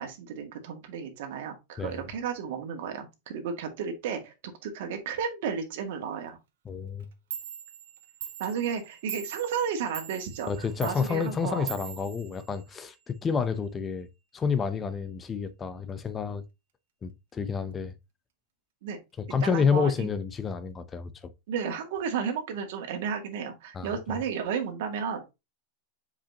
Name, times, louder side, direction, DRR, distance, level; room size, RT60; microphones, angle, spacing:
voice 1, 0.0-4.3 4.6-6.4 8.4-11.7 18.8-19.0 19.4-20.1 21.5-25.2, right 7 dB, 65° right, 2.1 m, -33 dB
voice 2, 6.7-7.1 10.4-14.1 14.3-16.4 17.0-17.9 19.2-21.3 23.7-24.2, left 6 dB, 20° left, 0.6 m, -29 dB
Clock, 7.0-7.1 7.3-13.0, right 9 dB, 90° right, 1.4 m, -42 dB
7.3 x 4.9 x 2.9 m
supercardioid pair, 150°, 0 cm